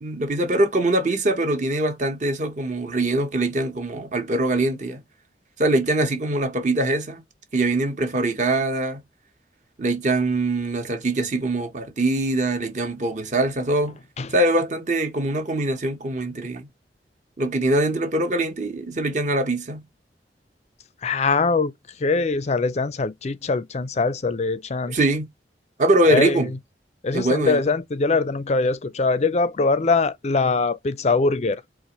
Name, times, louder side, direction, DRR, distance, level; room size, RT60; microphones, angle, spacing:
voice 1, 0.0-5.0 5.6-7.2 7.5-9.0 9.8-14.0 14.3-16.7 17.4-19.8 24.9-25.3 25.8-26.5 27.1-27.6, right 2 dB, 45° right, 1.0 m, -23 dB
voice 2, 21.0-25.0 26.0-26.6 27.0-31.6, left 3 dB, 40° left, 0.5 m, -22 dB
4.0 x 2.5 x 2.9 m
head